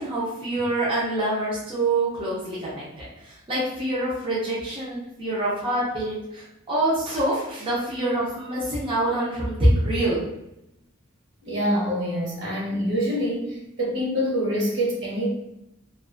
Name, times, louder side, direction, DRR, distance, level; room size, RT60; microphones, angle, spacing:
voice 1, 0.0-10.2, right 1 dB, 25° right, -8 dB, 0.6 m, -25 dB
voice 2, 11.4-15.3, equal, 60° right, -4 dB, 1.0 m, -25 dB
2.5 x 2.3 x 2.5 m, 0.85 s
head